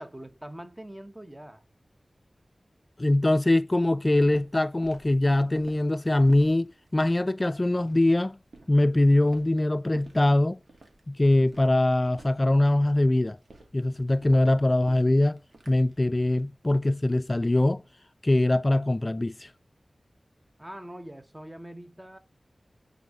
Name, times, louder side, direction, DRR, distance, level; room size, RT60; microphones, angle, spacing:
voice 1, 0.0-1.6 20.6-22.2, right 1 dB, 20° right, 1.1 m, -43 dB
voice 2, 3.0-8.4 8.7-10.6 11.1-13.4 13.7-15.4 15.7-17.8 18.2-19.5, left 1 dB, 35° left, 0.4 m, -22 dB
Walk footsteps, 3.7-16.5, right 2 dB, 75° right, 2.2 m, -53 dB
9.3 x 4.1 x 4.9 m
cardioid pair, 40°, 0 cm